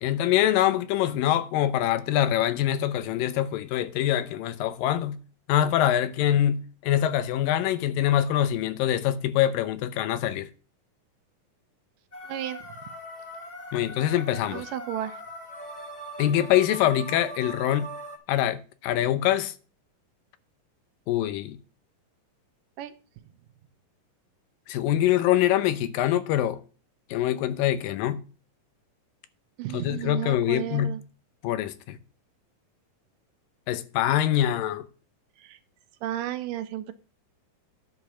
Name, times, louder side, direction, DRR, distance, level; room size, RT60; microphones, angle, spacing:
voice 1, 0.0-5.2 5.5-10.5 13.7-14.6 16.2-17.9 18.3-19.5 21.1-21.6 24.7-26.6 27.1-28.2 29.7-31.0 31.4-32.0 33.7-34.9, left 12 dB, 85° left, 2.5 m, -24 dB
sound 1, 12.1-18.2, equal, 55° left, 0.4 m, -40 dB
voice 2, 12.3-12.6 14.5-15.2 22.8-22.9 29.6-31.0 35.4-35.6 36.0-36.9, right 12 dB, 85° right, 2.4 m, -33 dB
10.5 x 5.3 x 6.1 m
omnidirectional pair, 3.9 m